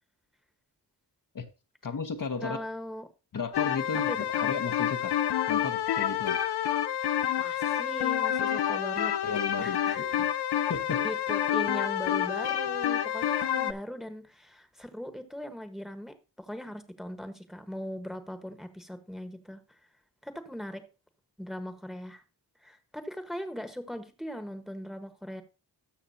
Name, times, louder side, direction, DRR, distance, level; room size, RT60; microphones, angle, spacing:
voice 1, 1.8-2.6 3.3-4.1 4.4-5.2 5.5-6.4 9.2-10.3 10.7-11.0, left 5 dB, 50° left, 0.9 m, -34 dB
voice 2, 2.4-3.1 4.1-4.2 7.4-9.2 9.6-10.0 10.6-10.7 11.0-19.6 20.2-20.8 21.4-22.2 22.6-25.4, equal, ahead, 1.2 m, -39 dB
sound 1, 3.5-13.7, left 10 dB, 70° left, 0.6 m, -28 dB
13.0 x 6.5 x 2.7 m
cardioid pair, 65°, 41 cm